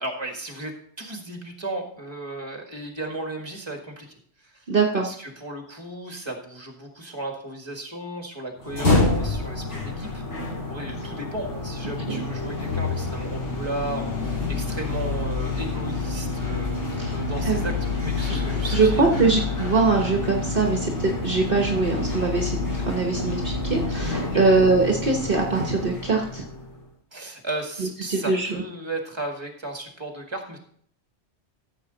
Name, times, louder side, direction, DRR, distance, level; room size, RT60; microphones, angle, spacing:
voice 1, 0.0-4.1 4.4-4.7 4.9-10.2 10.7-19.2 24.2-24.4 27.1-30.6, right 2 dB, 25° right, 3 dB, 1.8 m, -35 dB
voice 2, 4.7-5.1 12.1-12.2 17.0-17.2 17.4-17.7 18.3-18.4 18.7-26.4 27.8-28.6, right 3 dB, 50° right, 1 dB, 1.3 m, -22 dB
sound 1, 8.6-26.7, left 3 dB, 80° left, 3.6 m, -28 dB
14.0 x 7.1 x 3.9 m, 0.62 s
omnidirectional pair, 1.2 m